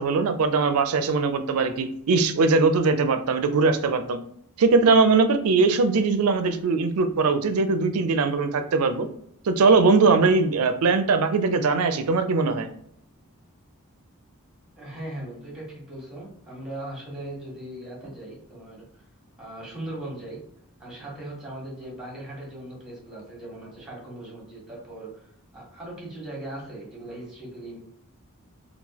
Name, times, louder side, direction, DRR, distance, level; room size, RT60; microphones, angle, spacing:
voice 1, 0.0-4.2 4.6-9.1 9.4-12.7, right 4 dB, 85° right, 9 dB, 0.4 m, -21 dB
voice 2, 14.8-19.0 19.4-20.4 20.8-27.8, right 1 dB, 5° right, -4 dB, 1.4 m, -39 dB
3.8 x 2.3 x 2.8 m, 0.70 s
head